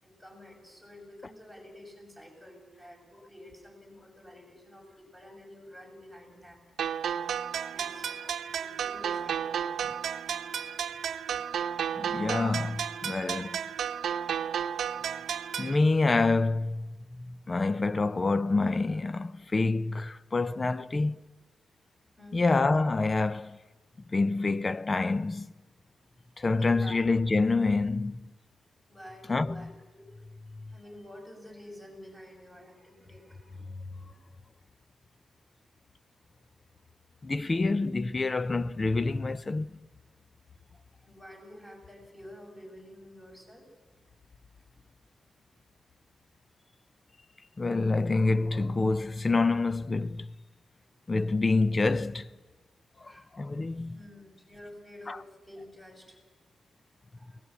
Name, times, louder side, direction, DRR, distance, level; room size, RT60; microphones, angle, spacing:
voice 1, 0.0-6.6 7.7-8.1 8.6-9.7 22.2-22.6 26.6-27.0 28.9-29.7 29.9-30.1 30.7-33.8 40.7-43.7 53.0-53.3 53.9-56.2 57.2-57.4, left 1 dB, 10° left, 7.0 m, -49 dB
sound 1, 6.8-15.8, right 8 dB, 80° right, 0.9 m, -33 dB
voice 2, 12.0-13.6 15.6-21.2 22.3-23.6 24.1-25.5 26.4-28.3 29.3-29.7 30.5-30.7 37.2-39.8 47.6-50.3 51.1-52.3 53.0-54.0 55.1-55.2, left 3 dB, 30° left, 0.7 m, -27 dB
23.0 x 19.0 x 8.4 m
cardioid pair, 95°, 0 cm